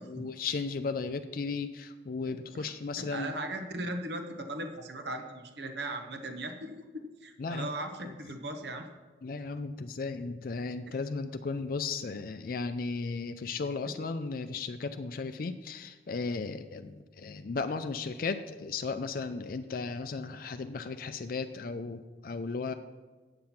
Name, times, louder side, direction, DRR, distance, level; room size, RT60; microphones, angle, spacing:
voice 1, 0.0-3.3 7.4-7.7 8.0-8.2 9.2-22.7, left 4 dB, 50° left, 9 dB, 0.4 m, -35 dB
voice 2, 3.1-8.9 10.9-11.0, right 1 dB, 70° right, 6 dB, 1.0 m, -38 dB
8.8 x 7.6 x 5.7 m, 1.4 s
head